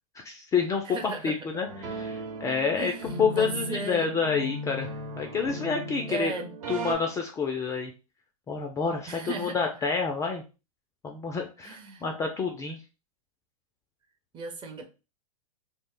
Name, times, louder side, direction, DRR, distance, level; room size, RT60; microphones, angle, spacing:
voice 1, 0.2-4.9 5.2-6.3 6.7-7.9 8.5-10.4 11.0-12.8, left 5 dB, 15° left, 3 dB, 0.3 m, -28 dB
voice 2, 0.8-1.3 2.8-4.1 6.1-6.5 9.1-9.6 11.6-12.0 14.3-14.8, right 3 dB, 25° right, 4 dB, 0.6 m, -36 dB
sound 1, 1.7-6.9, right 1 dB, 65° right, 1.0 m, -36 dB
2.4 x 2.1 x 3.6 m, 0.31 s
hypercardioid pair, 105°, 19 cm